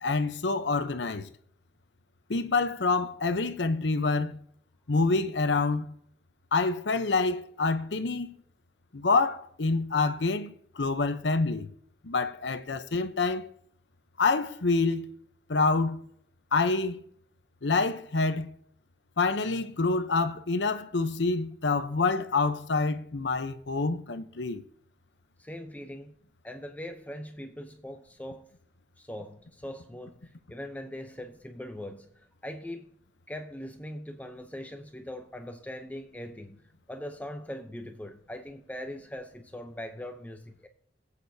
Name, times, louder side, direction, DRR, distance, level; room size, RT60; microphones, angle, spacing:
voice 1, 0.0-1.3 2.3-4.3 4.9-5.9 6.5-8.3 8.9-11.7 12.0-13.5 14.2-15.1 15.5-16.0 16.5-17.0 17.6-18.5 19.2-24.6, left 3 dB, 85° left, 0.8 m, -27 dB
voice 2, 25.4-26.1 26.4-28.5 29.0-32.1 32.4-32.9 33.3-40.7, left 1 dB, 10° left, 0.7 m, -41 dB
22.0 x 8.4 x 2.8 m
head